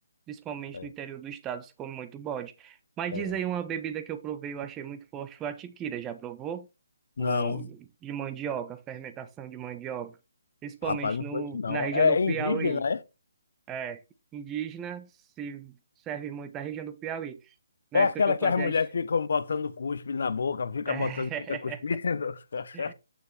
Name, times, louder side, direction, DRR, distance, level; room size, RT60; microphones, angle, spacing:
voice 1, 0.3-6.7 7.2-10.2 10.6-12.8 13.7-14.0 14.3-15.1 15.4-15.8 16.0-17.5 17.9-18.8 20.9-21.8 22.7-22.9, right 9 dB, 15° right, 1.1 m, -36 dB
voice 2, 7.2-7.7 10.8-13.0 17.9-22.9, left 5 dB, 60° left, 0.8 m, -28 dB
9.2 x 6.8 x 3.4 m
figure-of-eight pair, 145°, 0 cm